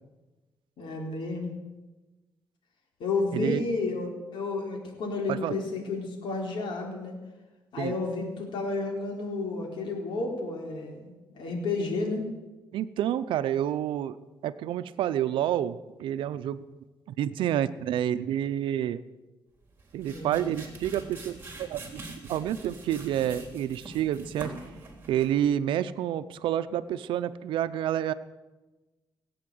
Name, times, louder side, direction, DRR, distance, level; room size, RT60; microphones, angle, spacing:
voice 1, 0.8-1.5 3.0-7.2 7.7-12.3 20.1-20.5, left 3 dB, 75° left, 1 dB, 4.0 m, -31 dB
voice 2, 3.3-3.6 5.3-5.6 7.8-7.9 12.7-14.2 14.4-16.6 17.1-19.0 19.9-24.5 25.1-28.1, right 11 dB, 85° right, 13 dB, 0.7 m, -29 dB
sound 1, 19.7-25.5, right 2 dB, 25° right, 3.6 m, -44 dB
18.5 x 8.7 x 7.9 m, 1.2 s
cardioid pair, 100°, 8 cm